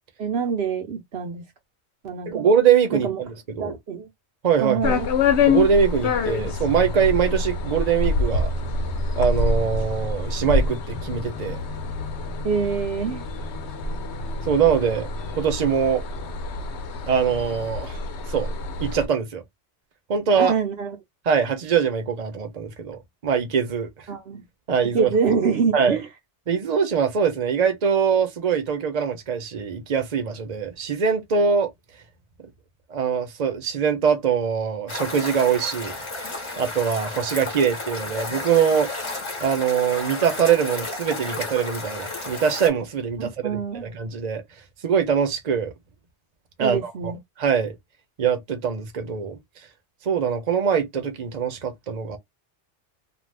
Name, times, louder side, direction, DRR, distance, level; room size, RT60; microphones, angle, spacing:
voice 1, 0.2-1.4 2.0-2.5 2.9-3.2 3.6-4.1 4.6-5.1 12.4-13.2 20.3-21.0 24.1-24.4 24.9-26.1 43.4-43.9 46.6-47.2, right 6 dB, 65° right, 0.9 m, -25 dB
voice 2, 2.3-3.8 4.4-4.9 5.5-8.5 9.2-11.6 14.5-15.1 15.3-16.0 17.1-18.0 18.3-18.5 18.8-19.4 20.1-20.5 21.3-23.9 24.7-25.1 25.7-26.0 26.5-31.7 32.9-36.0 36.6-38.9 39.4-44.4 44.8-45.7 46.6-47.1 47.4-47.8 48.2-49.4 50.1-52.2, right 7 dB, 40° right, 0.8 m, -23 dB
sound 1, 4.8-19.1, left 4 dB, 75° left, 0.9 m, -26 dB
sound 2, 34.9-42.7, left 2 dB, 30° left, 0.9 m, -32 dB
2.5 x 2.3 x 3.3 m
omnidirectional pair, 1.2 m